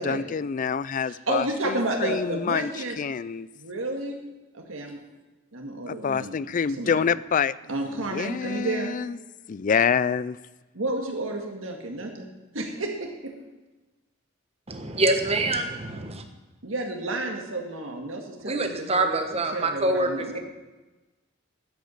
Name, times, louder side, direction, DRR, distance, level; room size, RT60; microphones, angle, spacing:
voice 1, 0.0-2.7 3.0-3.5 5.9-7.5 7.9-9.2 9.5-10.4, left 6 dB, 40° left, 19 dB, 0.4 m, -26 dB
voice 2, 1.0-3.0 3.6-4.2 4.5-5.0 5.5-6.4 6.8-7.0 7.7-9.0 10.7-13.3 16.6-19.2 19.5-20.4, right 2 dB, 75° right, 2 dB, 2.0 m, -31 dB
voice 3, 14.7-16.2 18.4-20.1, right 2 dB, 30° right, 5 dB, 1.3 m, -25 dB
10.5 x 8.2 x 7.9 m, 1.2 s
head